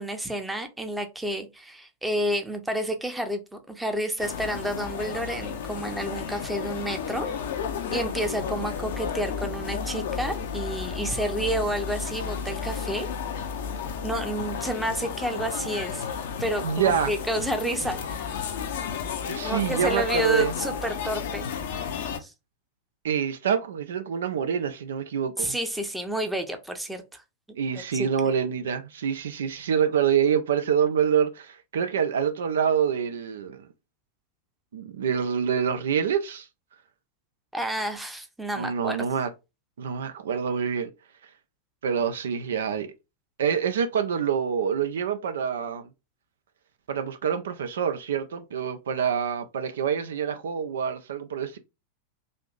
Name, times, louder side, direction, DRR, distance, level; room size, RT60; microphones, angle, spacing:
voice 1, 0.0-7.3 7.9-13.1 14.0-16.0 16.4-18.3 19.4-21.5 22.2-22.3 25.4-27.2 27.9-28.1 37.5-39.0, right 1 dB, 5° right, 0.6 m, -30 dB
sound 1, 4.2-22.2, left 7 dB, 55° left, 0.5 m, -32 dB
voice 2, 16.6-17.1 19.3-20.5 23.0-25.6 27.6-33.7 34.7-36.5 38.6-39.3 39.8-40.9 41.2-41.3 41.8-42.9 43.4-45.9 46.9-51.6, right 7 dB, 65° right, 0.4 m, -26 dB
3.4 x 2.6 x 2.4 m
figure-of-eight pair, 90°, 0 cm